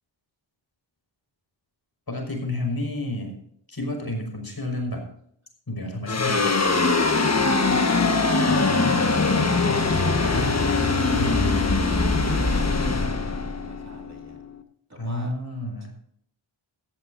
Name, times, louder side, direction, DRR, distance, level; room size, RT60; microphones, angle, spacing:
voice 1, 2.1-3.3 3.7-5.0 5.7-6.5 10.2-10.5 11.0-11.4 15.0-15.9, left 1 dB, 50° left, 3 dB, 5.5 m, -30 dB
sound 1, 6.1-14.6, left 3 dB, 35° left, 1.5 m, -22 dB
voice 2, 8.5-9.3 11.9-14.4 14.9-15.4, right 1 dB, 35° right, 0 dB, 2.7 m, -42 dB
17.5 x 13.5 x 2.7 m, 0.65 s
wide cardioid pair, 90°, 48 cm